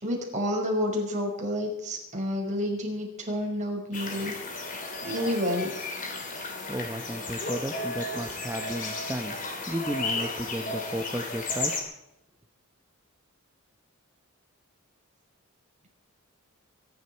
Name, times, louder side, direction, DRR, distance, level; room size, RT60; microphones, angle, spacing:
voice 1, 0.0-4.3 5.0-5.7, left 1 dB, 35° right, 0 dB, 5.6 m, -29 dB
sound 1, 3.9-11.8, left 2 dB, 40° left, 3.4 m, -34 dB
voice 2, 6.7-11.7, equal, 10° right, 5 dB, 0.9 m, -34 dB
24.0 x 11.5 x 4.6 m, 0.84 s
head